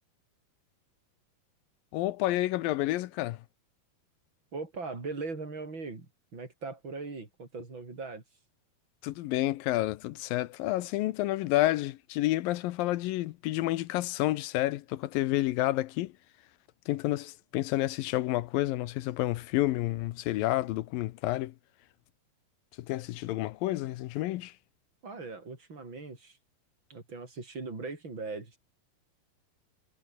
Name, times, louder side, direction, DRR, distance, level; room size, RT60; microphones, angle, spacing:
voice 1, 1.9-3.4 9.0-16.1 16.9-21.5 22.8-24.5, left 16 dB, 75° left, 2.3 m, -30 dB
voice 2, 4.5-8.2 25.0-26.4 26.9-28.6, right 3 dB, 30° right, 5.8 m, -40 dB
omnidirectional pair, 4.6 m